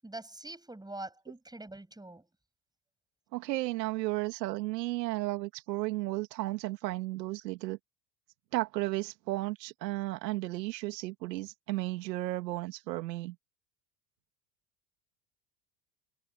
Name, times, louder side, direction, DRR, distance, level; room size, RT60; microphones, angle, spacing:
voice 1, 0.0-2.2, right 2 dB, 10° right, 7.9 m, -44 dB
voice 2, 3.3-7.8 8.5-13.3, right 18 dB, 85° right, 2.5 m, -34 dB
hypercardioid pair, 85°, 49 cm